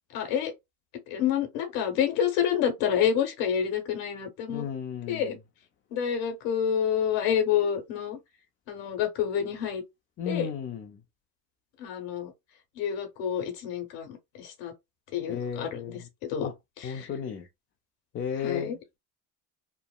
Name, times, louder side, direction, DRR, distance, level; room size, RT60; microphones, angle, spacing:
voice 1, 0.1-0.5 1.1-4.7 5.1-5.4 5.9-8.2 8.7-9.8 10.2-10.5 11.8-12.3 12.8-14.7 15.1-16.5 16.8-17.1 18.4-18.8, left 8 dB, 65° left, 1.1 m, -28 dB
voice 2, 4.5-5.4 10.2-11.0 15.3-16.1 16.4-16.5 16.8-17.4 18.1-19.0, left 7 dB, 30° left, 0.4 m, -34 dB
3.1 x 2.0 x 2.3 m
hypercardioid pair, 80°, 45 cm